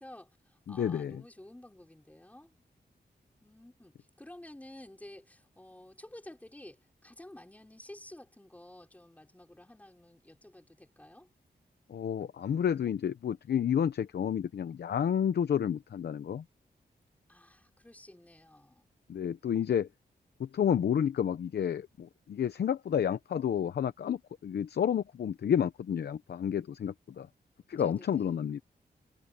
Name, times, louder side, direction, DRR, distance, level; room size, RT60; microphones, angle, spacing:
voice 1, 0.0-2.5 3.4-11.3 17.3-18.9 27.7-28.3, left 1 dB, 10° left, 5.3 m, -52 dB
voice 2, 0.7-1.2 11.9-16.4 19.1-19.9 20.4-27.3 27.7-28.6, left 8 dB, 75° left, 0.8 m, -30 dB
wide cardioid pair, 170°, 17 cm